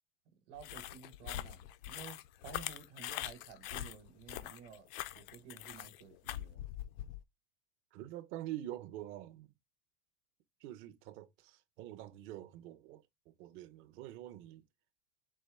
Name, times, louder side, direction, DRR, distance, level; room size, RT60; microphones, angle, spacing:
voice 1, 0.5-4.9 5.1-6.6, right 6 dB, 60° right, 1.1 m, -53 dB
sound 1, 0.6-7.2, left 13 dB, 50° left, 0.5 m, -43 dB
voice 2, 7.9-9.5 10.6-14.6, right 13 dB, 35° right, 0.5 m, -46 dB
4.4 x 3.1 x 3.3 m
supercardioid pair, 140°, 36 cm